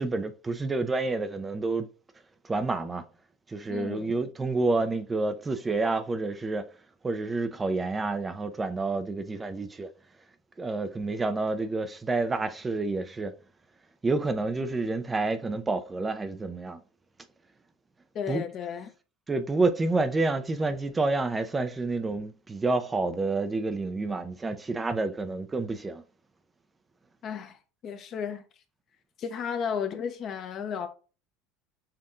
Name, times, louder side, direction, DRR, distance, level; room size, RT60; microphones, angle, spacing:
voice 1, 0.0-1.9 2.4-3.0 3.5-6.7 7.0-9.9 10.6-13.3 14.0-16.8 18.3-18.4 19.3-26.0, right 3 dB, 20° right, 0.5 m, -29 dB
voice 2, 3.7-4.2 18.1-18.9 27.2-27.6 27.8-28.4 29.2-30.9, left 7 dB, 45° left, 0.8 m, -33 dB
6.6 x 2.7 x 2.5 m
figure-of-eight pair, 70°, 0 cm